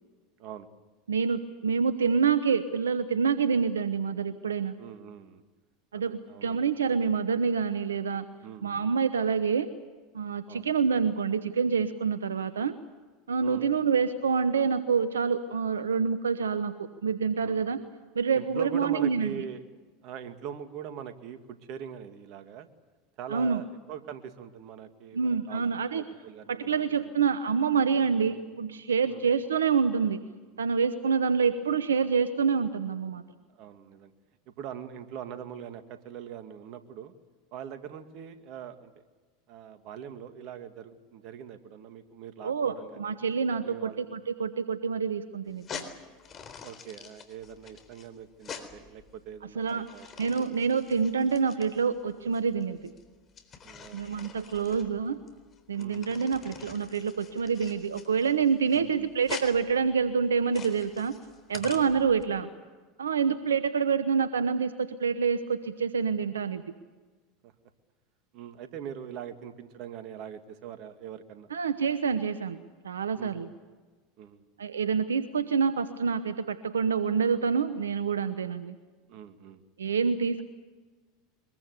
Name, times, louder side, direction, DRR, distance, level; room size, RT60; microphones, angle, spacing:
voice 1, 1.1-4.7 5.9-8.2 8.6-9.7 10.1-12.7 13.3-16.7 17.0-17.8 18.1-19.3 23.3-23.6 25.1-26.0 26.5-30.2 30.6-33.2 42.4-45.8 49.6-49.9 50.2-52.8 53.9-55.2 55.7-61.1 61.5-62.5 63.0-66.6 71.5-73.5 74.6-78.8 79.8-80.4, right 6 dB, 90° right, 12 dB, 1.0 m, -27 dB
voice 2, 4.8-5.4 5.9-6.6 8.4-8.8 10.5-10.7 13.4-13.7 17.4-17.6 18.4-19.6 20.0-22.7 23.2-27.1 28.2-28.4 29.1-29.3 31.4-31.5 33.5-34.1 34.5-37.1 37.5-38.9 39.5-43.2 43.6-44.0 46.6-50.6 53.6-54.0 54.6-54.8 55.8-56.1 58.7-59.1 61.9-62.0 63.2-63.4 67.4-67.5 68.3-71.5 73.2-73.4 74.2-74.4 79.1-79.6, right 8 dB, 55° right, 8 dB, 2.1 m, -42 dB
sound 1, 45.5-62.2, left 6 dB, 35° left, 3.9 m, -46 dB
23.0 x 22.0 x 8.2 m, 1.3 s
hypercardioid pair, 85°, 0 cm